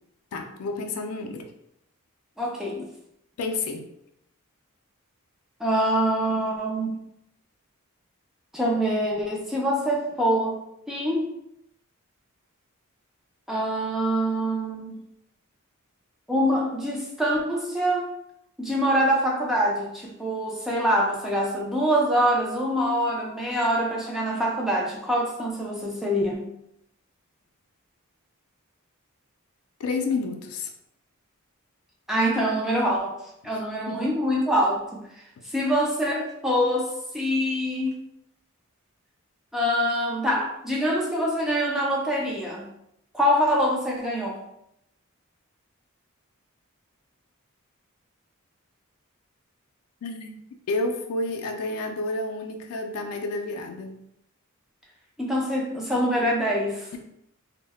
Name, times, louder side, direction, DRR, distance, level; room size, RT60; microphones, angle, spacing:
voice 1, 0.3-1.5 3.4-3.9 29.8-30.7 33.9-34.1 50.0-50.3 50.7-54.0, left 3 dB, 75° left, 5 dB, 0.4 m, -30 dB
voice 2, 2.4-2.9 5.6-7.0 8.5-10.6 10.9-11.3 13.5-14.9 16.3-18.1 18.6-26.5 32.1-33.1 33.4-35.0 35.5-38.1 39.5-42.7 43.1-44.4 55.2-56.9, equal, ahead, -3 dB, 0.4 m, -25 dB
2.1 x 2.0 x 3.4 m, 0.79 s
head